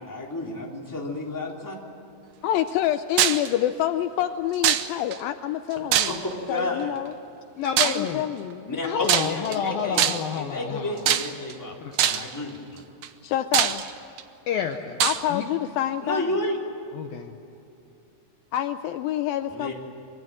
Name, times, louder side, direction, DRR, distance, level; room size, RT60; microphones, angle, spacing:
voice 1, 0.0-1.7 6.5-6.9 8.7-10.0 10.3-11.8 12.0-12.8 16.0-16.6 19.5-19.7, left 2 dB, 5° left, -1 dB, 3.0 m, -31 dB
voice 2, 2.4-6.2 6.5-7.1 7.8-8.8 13.2-13.8 15.0-16.3 18.5-19.7, left 11 dB, 85° left, 9 dB, 2.0 m, -27 dB
sound 1, 3.2-3.5 4.6-5.2 5.9-6.4 7.8-8.1 9.0-9.6 10.0-10.4 11.1-11.5 12.0-12.3 13.0-13.1 13.5-14.2 15.0-15.2, right 10 dB, 70° right, 2.0 m, -22 dB
voice 3, 7.6-8.2 8.8-11.1 11.8-12.3 14.5-15.0 15.3-15.4 16.9-17.3, left 7 dB, 70° left, 5 dB, 2.4 m, -29 dB
25.0 x 23.0 x 7.7 m, 2.8 s
omnidirectional pair, 4.9 m